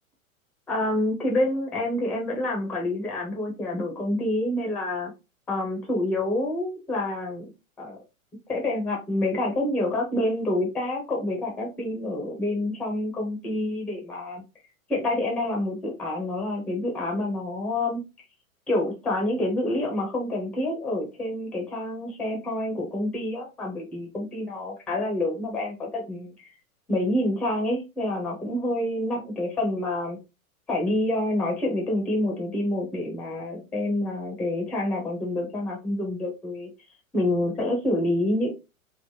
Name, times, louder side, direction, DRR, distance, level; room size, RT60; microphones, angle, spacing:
voice 1, 0.7-5.1 5.5-7.5 7.8-8.0 8.5-14.4 14.9-18.0 18.7-26.3 26.9-30.2 30.7-36.7 37.1-38.5, left 1 dB, 5° left, 0.4 m, -27 dB
3.1 x 2.1 x 2.8 m
hypercardioid pair, 125°, 43 cm